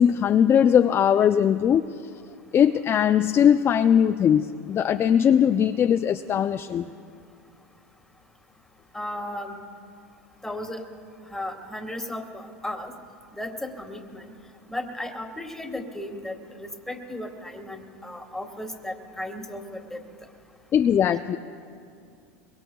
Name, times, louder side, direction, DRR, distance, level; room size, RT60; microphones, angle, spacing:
voice 1, 0.0-1.9 2.5-6.9 20.7-21.4, left 8 dB, 30° left, 8 dB, 0.4 m, -20 dB
voice 2, 8.9-9.6 10.4-10.8 11.3-12.9 13.3-14.2 14.7-20.0, left 1 dB, 5° left, 3 dB, 1.7 m, -35 dB
23.0 x 22.5 x 2.3 m, 2.3 s
hypercardioid pair, 105°, 8 cm